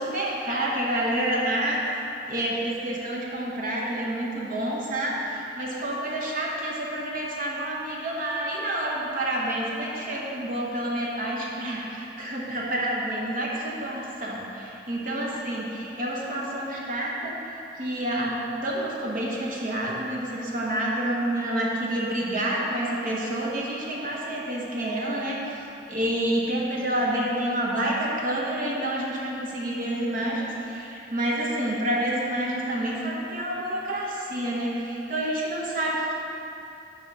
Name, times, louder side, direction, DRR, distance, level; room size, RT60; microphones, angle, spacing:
voice 1, 0.0-1.8 2.3-17.3 17.7-25.4 25.9-36.1, right 1 dB, 50° right, -4 dB, 0.9 m, -28 dB
5.7 x 5.0 x 5.8 m, 2.8 s
head